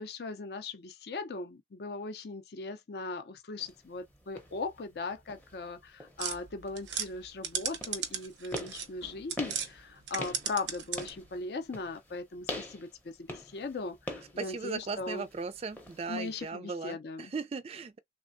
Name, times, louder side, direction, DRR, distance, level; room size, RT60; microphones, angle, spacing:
voice 1, 0.0-15.3 16.1-17.3, left 3 dB, 60° left, 0.5 m, -39 dB
sound 1, 3.6-16.5, left 1 dB, 10° left, 0.6 m, -45 dB
sound 2, 6.2-9.7 10.0-11.3, right 8 dB, 80° right, 0.6 m, -36 dB
voice 2, 14.4-18.0, right 4 dB, 35° right, 0.3 m, -37 dB
3.3 x 2.1 x 2.5 m
head